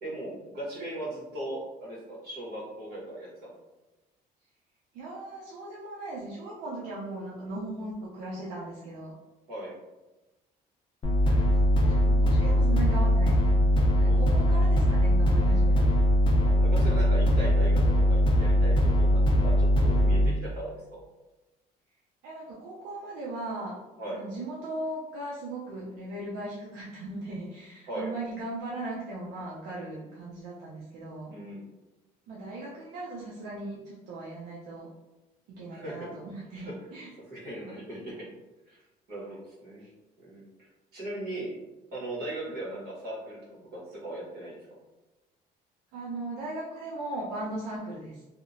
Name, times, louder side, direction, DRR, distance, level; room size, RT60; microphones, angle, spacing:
voice 1, 0.0-3.5 9.5-9.7 14.0-14.4 16.4-21.0 24.0-24.2 27.9-28.1 31.3-31.6 35.7-35.9 36.6-36.7 37.3-38.1 38.7-38.8 39.1-39.9 40.2-40.4 40.9-41.5 41.9-44.6, right 1 dB, 70° right, -5 dB, 1.2 m, -38 dB
voice 2, 4.9-9.1 11.2-13.6 14.0-16.0 22.2-23.8 24.1-31.4 32.3-34.9 35.5-37.1 39.8-39.9 45.9-48.2, right 2 dB, 90° right, -5 dB, 0.5 m, -38 dB
sound 1, 11.0-20.3, equal, 30° left, 0.5 m, -21 dB
2.7 x 2.1 x 2.5 m, 1.1 s
cardioid pair, 110°, 17 cm